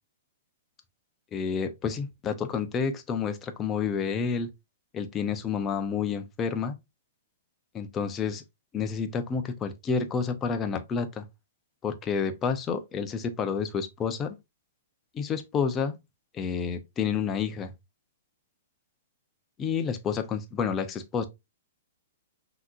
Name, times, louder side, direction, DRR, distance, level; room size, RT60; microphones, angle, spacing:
voice 1, 1.3-4.5 4.9-6.7 7.7-8.4 8.7-11.2 11.8-14.4 15.1-16.0 16.3-17.7 19.6-21.3, left 6 dB, 20° left, 0.8 m, -29 dB
5.7 x 3.0 x 2.5 m
hypercardioid pair, 130°, 0 cm